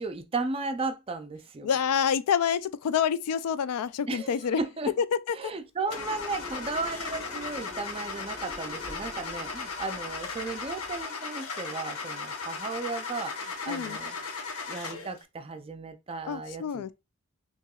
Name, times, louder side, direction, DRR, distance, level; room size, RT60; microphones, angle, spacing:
voice 1, 0.0-1.7 4.1-4.9 5.3-14.2 14.7-16.9, right 3 dB, 25° right, 0.4 m, -35 dB
voice 2, 1.6-4.6 13.7-14.0 16.3-16.9, left 7 dB, 90° left, 0.3 m, -27 dB
Car / Engine starting, 5.9-15.2, left 4 dB, 70° left, 0.8 m, -37 dB
sound 1, 5.9-11.0, left 2 dB, 20° left, 1.1 m, -47 dB
5.5 x 2.9 x 2.3 m
head